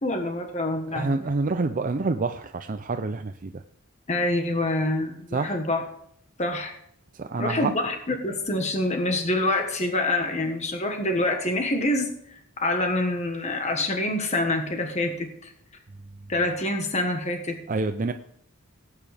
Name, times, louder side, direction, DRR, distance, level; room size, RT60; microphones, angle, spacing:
voice 1, 0.0-1.1 4.1-5.8 6.4-6.8 7.4-15.5 16.3-17.6, left 2 dB, 30° left, 4 dB, 1.4 m, -26 dB
voice 2, 0.9-3.6 5.3-5.6 7.1-7.7 17.7-18.1, right 3 dB, 40° right, 8 dB, 0.5 m, -27 dB
17.5 x 9.0 x 3.5 m, 0.71 s
head